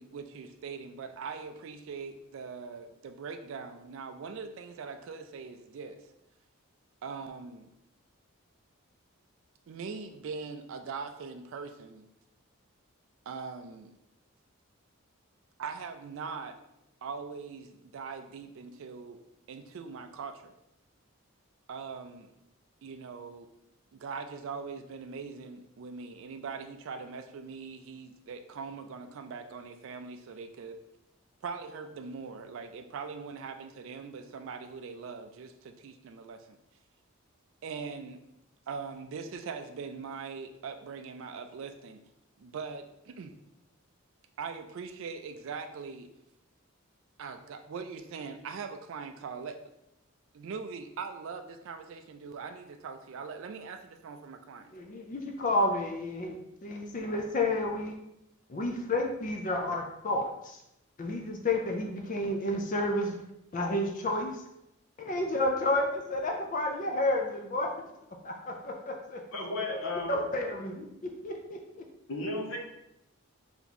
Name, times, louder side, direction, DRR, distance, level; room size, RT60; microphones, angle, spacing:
voice 1, 0.0-6.0 7.0-7.7 9.7-12.1 13.3-13.9 15.6-16.6 17.0-19.2 19.5-20.5 21.7-22.3 22.8-23.5 23.9-30.8 31.4-36.6 37.6-38.2 38.7-42.0 42.4-43.3 44.4-46.1 47.2-49.6 50.3-54.7, right 5 dB, 65° right, 6 dB, 0.3 m, -41 dB
voice 2, 54.7-56.4 56.6-57.9 58.5-60.6 61.0-63.2 63.5-64.4 65.0-67.9 68.2-69.2 70.1-70.9 71.2-71.6, left 1 dB, 35° left, 2 dB, 0.4 m, -30 dB
voice 3, 69.3-70.1 72.1-72.6, left 2 dB, 65° left, 1 dB, 0.8 m, -33 dB
3.4 x 2.9 x 4.1 m, 0.84 s
head